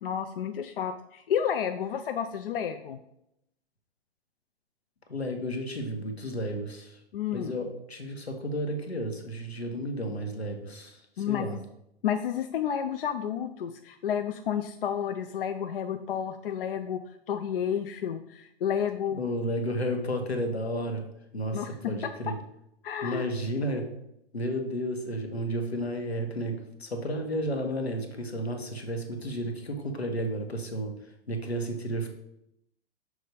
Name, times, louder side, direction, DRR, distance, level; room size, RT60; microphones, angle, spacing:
voice 1, 0.0-3.0 7.1-7.6 11.2-11.6 12.0-17.0 17.3-19.2 21.5-21.7 22.8-23.3, left 8 dB, 65° left, 7 dB, 0.5 m, -31 dB
voice 2, 5.1-7.0 7.3-11.6 19.1-21.1 21.3-22.4 23.0-23.9 24.3-30.9 31.3-32.1, equal, 90° left, 4 dB, 1.2 m, -32 dB
6.2 x 3.3 x 5.3 m, 0.80 s
figure-of-eight pair, 115°, 31 cm